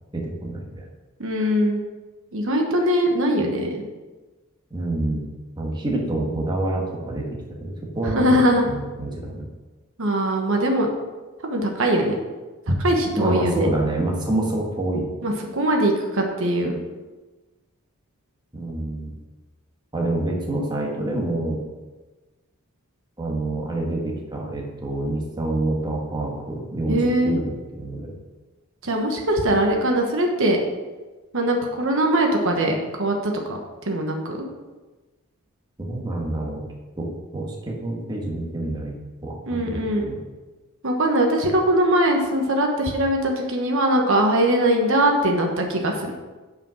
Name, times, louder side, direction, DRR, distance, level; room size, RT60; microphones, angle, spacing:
voice 1, 0.1-0.9 4.7-5.2 5.6-8.4 8.6-9.5 13.2-15.1 18.5-19.2 19.9-21.6 23.2-28.1 35.8-36.6 37.0-38.9 39.2-40.2, right 2 dB, 20° right, -1 dB, 1.4 m, -27 dB
voice 2, 1.2-1.8 2.3-3.8 8.0-8.7 10.0-10.9 11.4-12.2 12.7-13.7 15.2-16.8 26.9-27.3 28.8-30.6 31.3-33.6 33.8-34.4 39.5-40.1 40.8-46.1, right 1 dB, 65° right, 2 dB, 1.2 m, -21 dB
8.8 x 5.0 x 6.2 m, 1.2 s
head